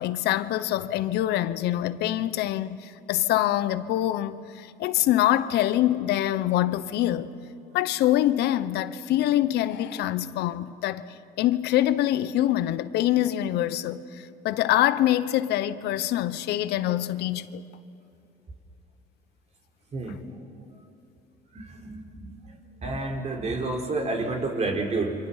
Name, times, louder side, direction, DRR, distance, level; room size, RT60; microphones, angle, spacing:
voice 1, 0.0-7.3 7.7-11.0 11.4-17.6, left 13 dB, 80° left, 0.9 m, -25 dB
voice 2, 21.5-22.3 22.8-25.2, right 3 dB, 40° right, 3.8 m, -29 dB
29.0 x 25.5 x 5.7 m
cardioid pair, 110°, 17 cm